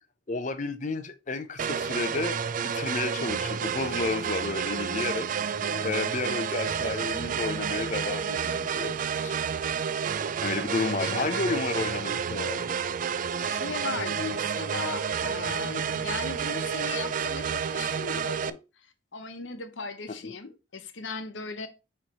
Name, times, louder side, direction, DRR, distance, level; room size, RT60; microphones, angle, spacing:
voice 1, 0.3-9.3 10.4-12.8 20.2-20.3, left 3 dB, 40° left, 0.6 m, -32 dB
sound 1, 1.6-18.5, right 7 dB, 45° right, 0.3 m, -30 dB
voice 2, 5.6-6.0 11.0-11.5 13.4-18.9 19.1-21.7, left 4 dB, 85° left, 0.9 m, -37 dB
7.6 x 3.2 x 4.1 m
head